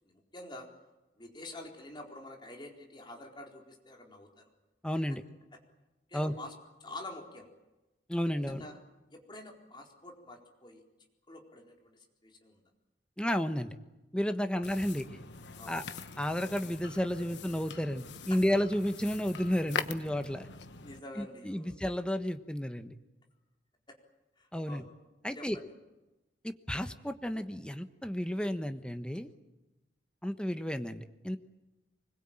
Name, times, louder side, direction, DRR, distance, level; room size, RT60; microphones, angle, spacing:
voice 1, 0.1-0.7 1.2-4.5 6.1-6.5 6.8-7.5 8.5-8.8 9.1-10.8 11.3-12.6 14.5-14.7 15.6-15.8 18.3-18.4 20.8-21.7 23.9-24.0 24.4-24.9 25.3-25.7, left 2 dB, 25° left, 1 dB, 4.2 m, -47 dB
voice 2, 4.8-5.2 6.1-6.3 8.1-8.6 13.2-13.8 14.1-15.2 15.7-15.8 16.2-20.5 21.2-22.9 24.5-24.8 25.2-25.6 26.4-29.3 30.2-31.4, equal, 5° left, 7 dB, 1.2 m, -32 dB
sound 1, 14.6-21.0, left 5 dB, 80° left, 1.3 m, -43 dB
24.5 x 21.5 x 8.9 m, 1.0 s
head